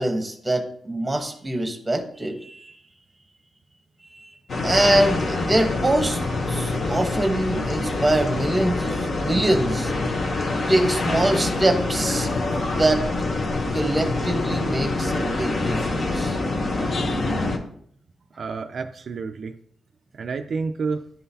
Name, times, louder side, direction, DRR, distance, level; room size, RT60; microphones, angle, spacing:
voice 1, 0.0-2.8 4.1-4.3 4.6-6.2 6.5-9.9 10.5-12.3 12.6-13.0 13.7-16.4, right 1 dB, 10° right, 4 dB, 1.0 m, -24 dB
sound 1, 4.5-17.6, left 2 dB, 45° left, 0.8 m, -25 dB
voice 2, 18.4-19.5 20.1-21.1, right 4 dB, 50° right, 5 dB, 0.3 m, -29 dB
11.0 x 3.8 x 2.8 m, 0.64 s
wide cardioid pair, 140°, 0 cm